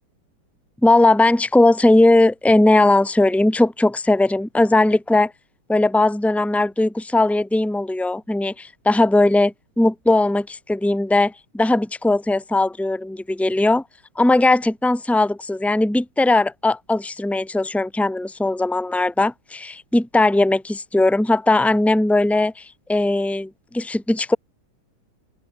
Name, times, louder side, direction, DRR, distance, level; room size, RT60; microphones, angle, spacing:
voice 1, 0.8-5.3 5.7-13.8 14.2-24.4, left 2 dB, ahead, 2.8 m, -18 dB
open air
omnidirectional pair, 2.3 m